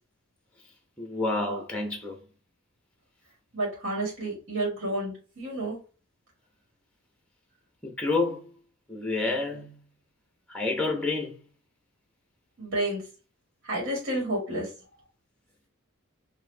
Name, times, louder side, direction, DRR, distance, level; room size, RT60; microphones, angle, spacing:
voice 1, 1.0-2.2 7.8-8.5 8.9-9.7 10.5-11.3, left 3 dB, 5° left, 0.7 m, -29 dB
voice 2, 3.5-5.8 12.6-13.0 13.6-14.7, right 1 dB, 55° right, 1.9 m, -30 dB
4.2 x 2.6 x 2.6 m
head